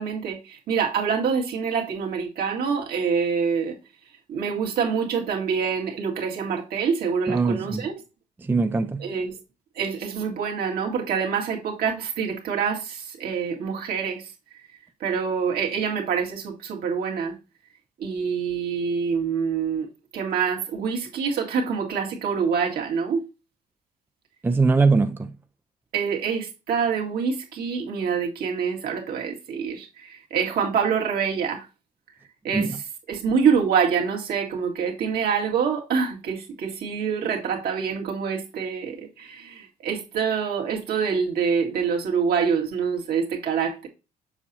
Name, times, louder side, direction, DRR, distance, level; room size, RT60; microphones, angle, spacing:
voice 1, 0.0-3.8 4.3-8.0 9.0-9.4 9.8-14.3 15.0-17.3 18.0-19.9 20.1-23.2 25.9-31.7 32.4-32.8 33.1-43.9, right 6 dB, 65° right, 2.0 m, -26 dB
voice 2, 7.3-7.8 8.4-9.1 24.4-25.3 32.5-32.8, right 4 dB, 10° right, 0.4 m, -21 dB
7.1 x 5.7 x 2.7 m
cardioid pair, 110°, 17 cm